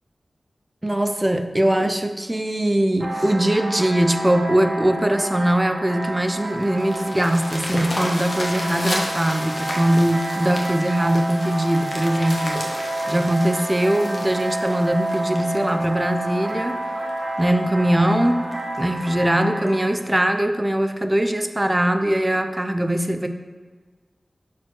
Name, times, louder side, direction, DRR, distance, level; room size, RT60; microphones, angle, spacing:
voice 1, 0.8-12.6 13.1-16.8 17.4-18.5 18.8-23.3, right 1 dB, 20° right, 8 dB, 0.5 m, -21 dB
sound 1, 3.0-19.8, right 1 dB, 40° right, 1.8 m, -29 dB
sound 2, 6.0-16.5 17.1-17.2 17.6-17.7 18.0-18.1 18.5-18.8 19.7-19.8, left 1 dB, 40° left, 1.3 m, -33 dB
6.1 x 4.3 x 4.6 m, 1.4 s
cardioid pair, 50°, 0 cm